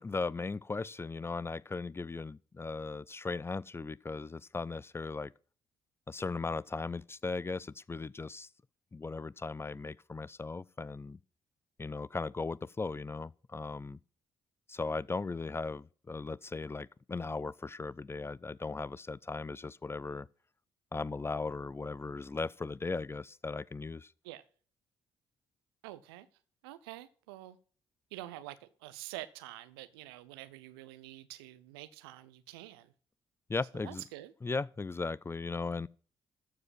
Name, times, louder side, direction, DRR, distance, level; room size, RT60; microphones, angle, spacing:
voice 1, 0.0-5.3 6.1-8.5 8.9-11.2 11.8-14.0 14.7-20.3 20.9-24.1 33.5-34.0 34.4-35.9, left 3 dB, 20° left, 0.4 m, -37 dB
voice 2, 25.8-26.3 26.6-27.6 28.1-32.9 33.7-34.3, right 16 dB, 75° right, 0.8 m, -47 dB
14.0 x 4.9 x 7.5 m
figure-of-eight pair, 45°, 13 cm